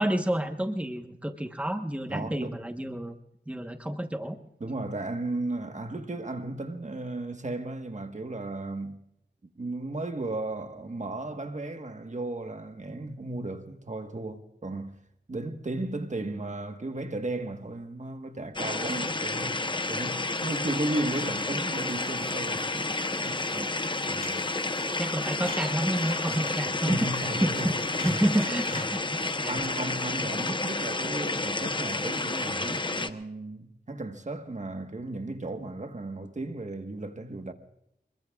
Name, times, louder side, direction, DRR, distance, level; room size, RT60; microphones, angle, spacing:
voice 1, 0.0-3.1 3.5-4.4 23.5-23.7 25.0-27.7 28.0-29.6, right 1 dB, 5° right, 1.2 m, -29 dB
voice 2, 2.1-2.6 4.6-9.0 9.6-14.9 15.3-23.5 24.0-24.4 26.8-27.8 28.1-28.2 28.7-28.8 29.5-37.5, right 2 dB, 40° right, 1.4 m, -35 dB
sound 1, 18.6-33.1, left 2 dB, 25° left, 0.9 m, -30 dB
sound 2, 19.8-28.9, left 3 dB, 45° left, 3.3 m, -45 dB
26.0 x 22.0 x 2.4 m
wide cardioid pair, 80°, 19 cm